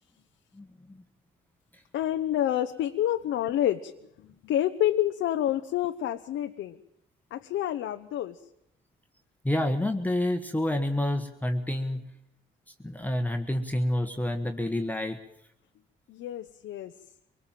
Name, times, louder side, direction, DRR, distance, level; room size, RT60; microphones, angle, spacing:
voice 1, 0.5-1.0 9.4-12.0 12.8-15.2, left 1 dB, 10° left, 5 dB, 1.5 m, -28 dB
voice 2, 1.9-3.9 4.2-6.8 7.3-8.4 16.1-16.9, left 12 dB, 80° left, 6 dB, 0.9 m, -28 dB
23.5 x 19.5 x 7.5 m, 0.78 s
cardioid pair, 90°, 20 cm